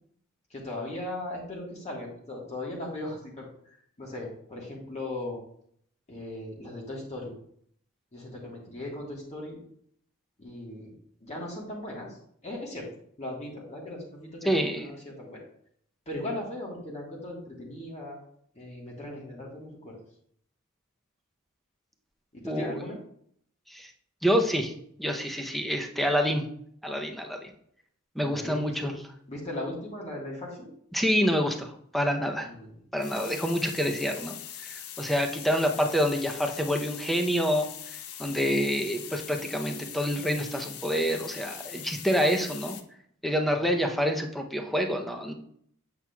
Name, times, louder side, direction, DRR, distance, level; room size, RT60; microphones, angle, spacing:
voice 1, 0.5-5.4 6.1-7.3 8.1-9.6 10.4-10.9 11.2-12.9 13.2-15.5 16.0-18.2 18.5-20.0 22.3-23.0 28.2-28.9 29.3-30.7 32.4-32.7 43.4-43.7, left 1 dB, 30° left, -3 dB, 1.4 m, -38 dB
voice 2, 14.5-14.9 22.4-22.9 23.7-23.9 24.2-24.7 25.0-26.4 26.8-27.5 28.2-29.0 30.9-32.5 32.9-34.3 34.6-37.7 38.2-42.8 43.2-45.3, equal, ahead, 3 dB, 0.6 m, -27 dB
sound 1, 33.0-42.8, left 10 dB, 85° left, 0.6 m, -42 dB
7.9 x 5.9 x 2.3 m, 0.66 s
head